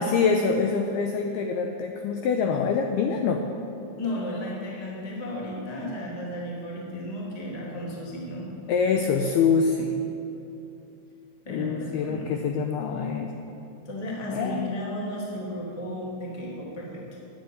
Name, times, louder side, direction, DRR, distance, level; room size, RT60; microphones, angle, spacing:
voice 1, 0.0-3.4 8.7-10.0 11.5-13.3 14.3-14.7, left 5 dB, 90° left, 4 dB, 2.2 m, -25 dB
voice 2, 4.0-8.5 11.4-12.3 13.8-17.0, equal, 20° left, -4 dB, 0.9 m, -34 dB
9.5 x 9.5 x 9.2 m, 2.8 s
omnidirectional pair, 5.3 m